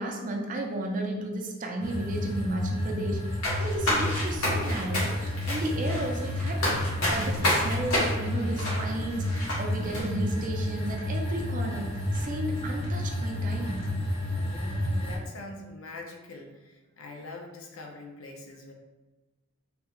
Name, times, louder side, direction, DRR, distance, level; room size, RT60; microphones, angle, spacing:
voice 1, 0.0-3.2 3.6-6.8 7.1-13.9, right 1 dB, 40° right, 2 dB, 0.4 m, -33 dB
sound 1, 1.8-15.2, left 1 dB, 25° left, 0.6 m, -31 dB
sound 2, 3.4-9.6 9.9-10.0, left 1 dB, 85° left, 1.2 m, -29 dB
voice 2, 14.3-18.7, left 2 dB, 70° left, 1 dB, 0.5 m, -43 dB
3.4 x 2.4 x 2.9 m, 1.2 s
head